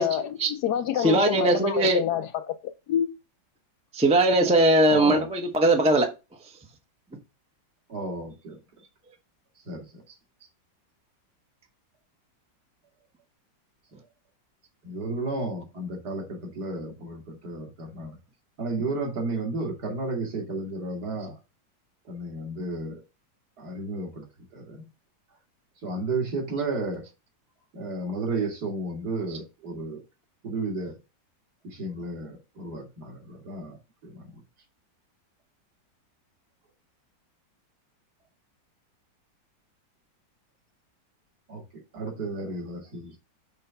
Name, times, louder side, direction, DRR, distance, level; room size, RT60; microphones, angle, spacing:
voice 1, 0.0-3.1, left 10 dB, 70° left, 1.0 m, -28 dB
voice 2, 1.0-2.0 3.9-6.1, right 1 dB, 5° right, 0.6 m, -20 dB
voice 3, 4.9-5.3 7.9-8.6 9.7-10.0 14.8-18.2 18.6-21.4 22.0-23.0 23.6-24.3 24.5-24.8 25.8-27.0 27.7-30.0 30.4-30.9 31.6-33.8 34.0-34.4 41.5-43.2, right 2 dB, 60° right, 2.6 m, -33 dB
6.6 x 3.3 x 5.6 m
omnidirectional pair, 2.0 m